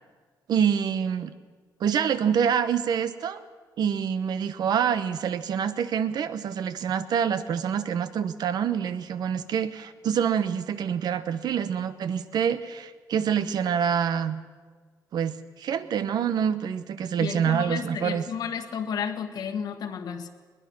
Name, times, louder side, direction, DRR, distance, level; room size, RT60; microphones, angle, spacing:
voice 1, 0.5-1.3 1.8-3.4 3.8-14.4 15.1-18.2, right 8 dB, 75° right, 12 dB, 1.1 m, -26 dB
voice 2, 17.2-20.3, left 7 dB, 70° left, 5 dB, 1.5 m, -32 dB
21.0 x 20.0 x 6.2 m, 1.5 s
wide cardioid pair, 145°, 7 cm